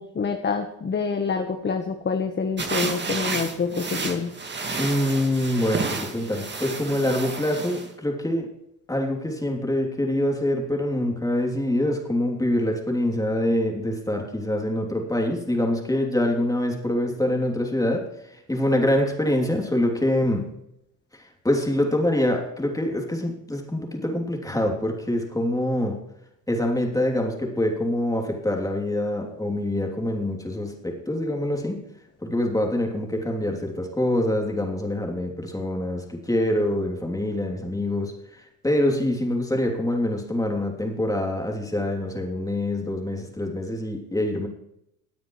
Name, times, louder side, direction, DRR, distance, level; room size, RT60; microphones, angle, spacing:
voice 1, 0.0-4.3, left 5 dB, 25° left, 6 dB, 1.2 m, -27 dB
sound 1, 2.6-7.9, right 3 dB, 25° right, 2.1 m, -31 dB
voice 2, 4.8-8.5 8.9-20.5 21.1-26.0 26.5-31.8 32.2-44.5, left 1 dB, 10° left, 1 dB, 3.1 m, -25 dB
17.5 x 9.2 x 3.2 m, 0.81 s
hypercardioid pair, 70°, 46 cm